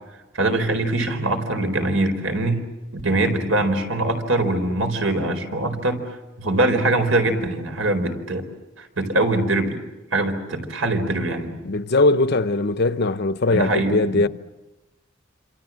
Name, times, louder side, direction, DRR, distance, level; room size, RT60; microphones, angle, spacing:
voice 1, 0.3-2.6 2.9-6.0 6.4-8.5 8.8-9.8 10.1-11.6 13.5-14.2, right 2 dB, 80° right, 4.6 m, -22 dB
voice 2, 11.6-14.3, left 2 dB, 55° left, 0.9 m, -20 dB
27.5 x 27.0 x 7.5 m
head